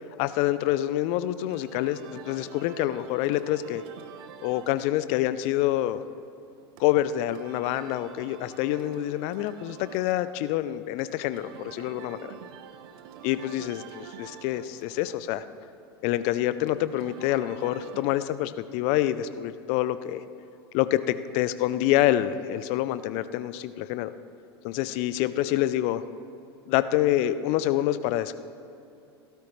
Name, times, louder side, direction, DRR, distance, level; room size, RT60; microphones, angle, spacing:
voice 1, 0.2-3.8 4.4-6.0 6.8-12.3 13.2-15.4 16.0-20.2 20.7-24.1 24.6-26.0 26.7-28.3, left 13 dB, 50° left, 14 dB, 0.6 m, -27 dB
sound 1, 1.4-18.0, right 9 dB, 60° right, 1.0 m, -48 dB
16.5 x 13.0 x 3.2 m, 2.7 s
hypercardioid pair, 85°, 14 cm